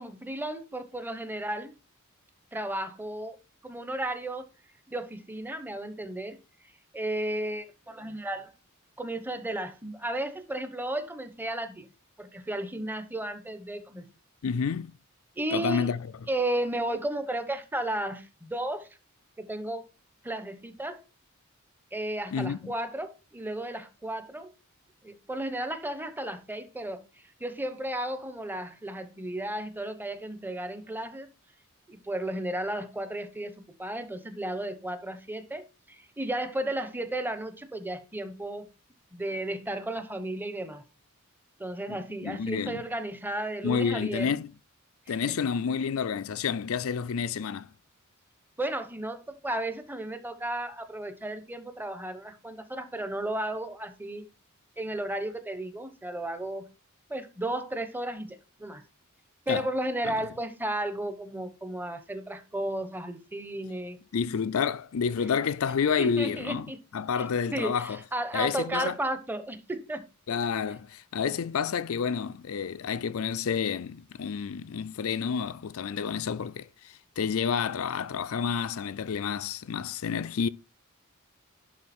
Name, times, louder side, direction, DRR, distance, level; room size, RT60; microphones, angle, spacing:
voice 1, 0.0-1.7 2.5-3.4 3.6-4.5 4.9-6.4 6.9-8.5 9.0-11.9 12.2-14.1 15.4-15.9 16.3-18.9 19.4-19.9 20.2-21.0 21.9-24.5 25.0-27.0 27.4-31.3 31.9-38.7 39.1-40.8 41.6-44.4 45.1-45.4 48.6-54.3 54.8-56.7 57.1-58.8 59.5-64.0 66.0-66.8 67.5-70.0, right 1 dB, 10° right, 0.9 m, -34 dB
voice 2, 14.4-14.9 15.5-16.0 22.3-22.7 41.9-42.0 42.2-42.8 43.6-44.5 45.1-47.7 59.5-59.7 60.0-60.1 64.1-68.0 68.3-68.9 70.3-80.5, left 6 dB, 70° left, 0.4 m, -29 dB
11.5 x 3.8 x 4.3 m
head